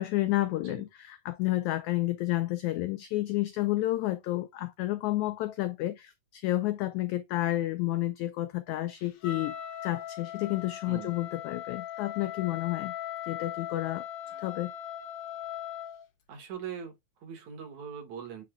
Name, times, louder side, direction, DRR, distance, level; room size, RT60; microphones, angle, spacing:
voice 1, 0.0-9.5 9.8-12.9 13.3-14.1 14.4-14.7, left 16 dB, 85° left, 1.7 m, -30 dB
Wind instrument woodwind instrument, 9.2-16.0, left 10 dB, 65° left, 2.6 m, -39 dB
voice 2, 16.3-18.4, right 8 dB, 60° right, 2.5 m, -41 dB
8.3 x 5.1 x 2.3 m
omnidirectional pair, 4.0 m